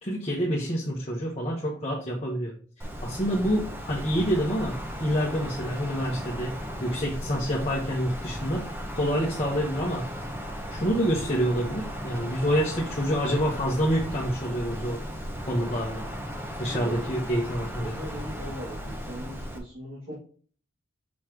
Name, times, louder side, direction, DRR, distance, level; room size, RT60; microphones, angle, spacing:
voice 1, 0.0-2.5 3.0-10.1 10.7-15.0 15.4-16.1 16.6-17.9, equal, 30° left, -4 dB, 1.2 m, -27 dB
Wind, 2.8-19.6, equal, 10° right, 0.9 m, -36 dB
voice 2, 17.8-20.2, right 1 dB, 65° right, -7 dB, 2.1 m, -39 dB
6.3 x 5.7 x 3.0 m, 0.43 s
head